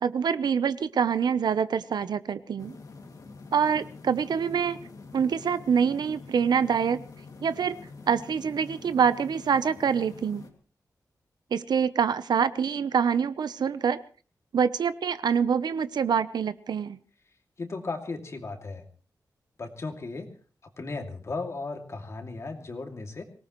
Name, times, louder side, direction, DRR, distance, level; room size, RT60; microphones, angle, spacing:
voice 1, 0.0-2.8 3.5-4.8 5.1-7.0 7.4-7.8 8.1-10.4 11.5-14.0 14.5-17.0, right 7 dB, 90° right, 14 dB, 0.8 m, -25 dB
sound 1, 2.6-10.5, left 4 dB, 60° left, 2.4 m, -46 dB
voice 2, 17.6-18.8 19.6-20.3 20.8-23.2, left 3 dB, 40° left, 4 dB, 2.6 m, -35 dB
25.0 x 18.0 x 3.2 m, 0.39 s
wide cardioid pair, 160°, 7 cm